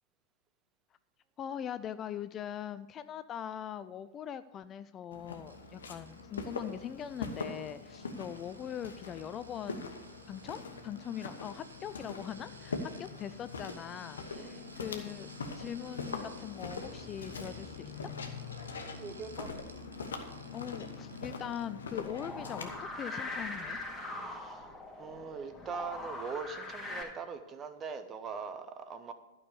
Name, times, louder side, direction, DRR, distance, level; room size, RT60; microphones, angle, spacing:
voice 1, 1.4-9.9 10.3-15.3 15.6-18.1 20.5-23.8, left 9 dB, 30° left, 13 dB, 0.3 m, -41 dB
Walk footsteps, 5.1-22.8, left 4 dB, 70° left, 1.1 m, -42 dB
sound 1, 5.5-21.9 22.2-22.5 22.8-22.9, right 4 dB, 80° right, 0.8 m, -57 dB
voice 2, 14.4-14.7 18.7-19.6 24.0-24.7 25.0-29.1, right 5 dB, 25° right, 9 dB, 0.9 m, -42 dB
sound 2, 22.0-27.0, left 2 dB, 5° left, 2.1 m, -41 dB
12.0 x 5.5 x 6.8 m, 1.1 s
figure-of-eight pair, 95°, 0 cm